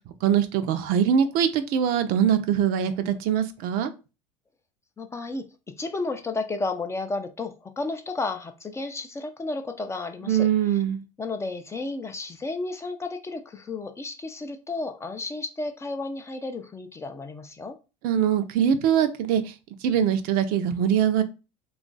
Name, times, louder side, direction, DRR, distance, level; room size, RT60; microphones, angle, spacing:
voice 1, 0.2-3.9 10.3-11.0 18.0-19.5 19.8-21.2, right 9 dB, 55° right, 0.5 m, -22 dB
voice 2, 5.0-10.8 11.2-17.8, left 3 dB, 15° left, 0.4 m, -32 dB
2.9 x 2.4 x 3.9 m
supercardioid pair, 105°, 17 cm